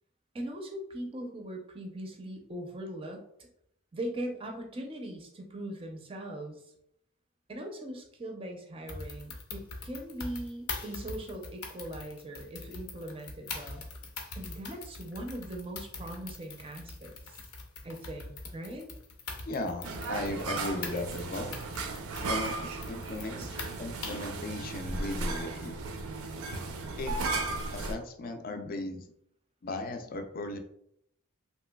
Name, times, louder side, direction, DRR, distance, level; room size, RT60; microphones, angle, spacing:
voice 1, 0.3-3.5 3.9-6.6 7.5-13.8 14.4-17.1 17.8-18.9, right 1 dB, 25° right, 2 dB, 0.5 m, -40 dB
sound 1, 8.9-24.4, left 3 dB, 90° left, 0.6 m, -43 dB
voice 2, 19.5-21.6 22.2-25.8 27.0-27.2 27.7-29.1 29.6-30.6, left 2 dB, 40° left, 6 dB, 0.4 m, -37 dB
sound 2, 19.8-27.9, right 3 dB, 85° right, 0.5 m, -35 dB
3.1 x 2.9 x 2.2 m, 0.72 s
head